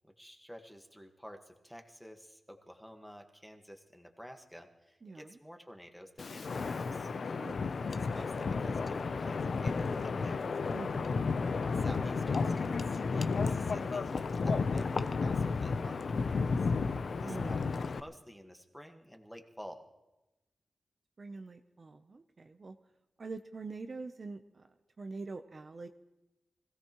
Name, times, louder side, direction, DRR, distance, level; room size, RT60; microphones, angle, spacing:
voice 1, 0.0-7.1 8.0-10.5 11.7-16.7 17.2-19.9, equal, ahead, 4 dB, 1.4 m, -51 dB
voice 2, 5.0-5.4 7.3-8.0 10.7-11.2 17.2-17.5 21.2-22.8 23.2-25.9, right 3 dB, 40° right, 7 dB, 0.6 m, -45 dB
Wind, 6.2-18.0, left 4 dB, 60° left, 0.6 m, -32 dB
25.0 x 16.5 x 3.0 m, 0.99 s
wide cardioid pair, 115°, 0 cm